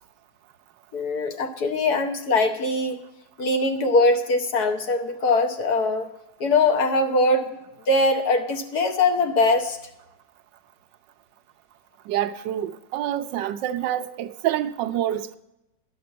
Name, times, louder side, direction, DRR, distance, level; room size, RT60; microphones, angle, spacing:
voice 1, 0.9-3.0 3.4-6.1 6.4-7.6 7.9-9.8, left 2 dB, 60° left, 1.5 m, -22 dB
voice 2, 12.1-15.4, right 12 dB, 80° right, 1.2 m, -27 dB
11.0 x 6.0 x 7.8 m
omnidirectional pair, 2.0 m